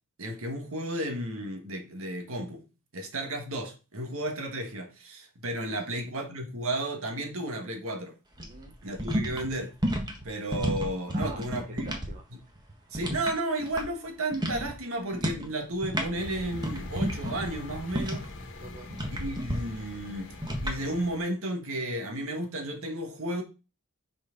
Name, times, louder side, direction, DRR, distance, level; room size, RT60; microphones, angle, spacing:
voice 1, 0.2-2.6 2.9-8.1 8.8-9.8 10.2-11.9 12.9-18.3 19.1-20.3 20.6-23.4, right 1 dB, 65° right, 1.6 m, -33 dB
sound 1, 8.3-12.1 12.4-14.1 14.3-14.7 15.1-15.5 15.7-18.4 18.9-19.6 20.4-20.8, equal, 20° right, 1.4 m, -31 dB
voice 2, 8.4-8.7 11.1-12.3 18.6-18.9, right 3 dB, 35° right, 1.0 m, -46 dB
sound 2, 16.2-21.2, left 2 dB, 60° left, 1.3 m, -42 dB
6.3 x 4.4 x 5.1 m
head